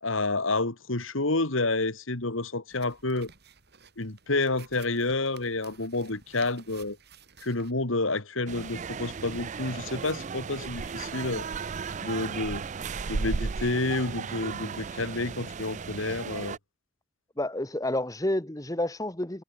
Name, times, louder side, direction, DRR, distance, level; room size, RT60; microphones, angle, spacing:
voice 1, 0.0-3.3 4.0-7.0 7.4-11.5 12.0-12.6 13.0-16.6, left 2 dB, 75° left, 2.4 m, -29 dB
sound 1, 2.7-7.7, right 6 dB, 55° right, 4.4 m, -54 dB
sound 2, 8.5-16.6, right 5 dB, 35° right, 0.4 m, -35 dB
voice 2, 17.4-19.4, left 1 dB, 15° left, 1.5 m, -29 dB
head